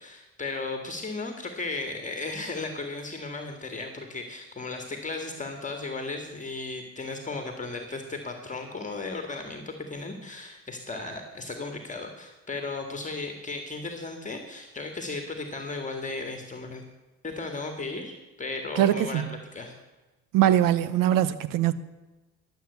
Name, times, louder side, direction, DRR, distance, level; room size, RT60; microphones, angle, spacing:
voice 1, 0.0-16.8 17.2-19.7, left 3 dB, 25° left, 1.9 m, -35 dB
voice 2, 18.7-19.3 20.3-21.7, right 11 dB, 80° right, 0.9 m, -22 dB
12.0 x 7.8 x 8.1 m
cardioid pair, 95°, 32 cm